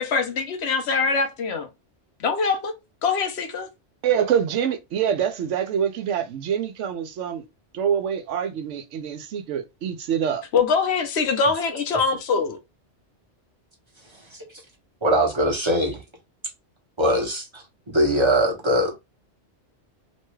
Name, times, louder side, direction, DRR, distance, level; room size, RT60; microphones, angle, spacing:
voice 1, 0.0-1.7 2.2-2.7 3.0-3.7 10.5-12.6, left 5 dB, 65° left, 0.9 m, -23 dB
voice 2, 4.0-7.4 7.7-10.4, right 8 dB, 85° right, 0.9 m, -25 dB
voice 3, 15.0-16.0 17.0-19.0, equal, 25° right, 0.9 m, -22 dB
3.0 x 2.2 x 3.0 m
omnidirectional pair, 1.2 m